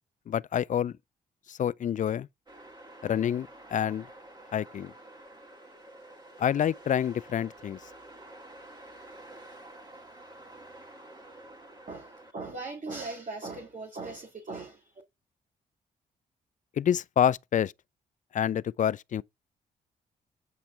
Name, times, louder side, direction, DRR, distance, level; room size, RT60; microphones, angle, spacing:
voice 1, 0.3-0.9 1.5-2.3 3.0-4.1 4.5-4.9 6.4-7.8 16.8-17.7 18.3-19.2, left 9 dB, 45° left, 0.4 m, -27 dB
sound 1, 2.5-12.3, right 1 dB, 25° right, 2.7 m, -49 dB
voice 2, 11.9-15.0, right 3 dB, 40° right, 1.9 m, -39 dB
8.4 x 5.8 x 3.4 m
hypercardioid pair, 45°, 19 cm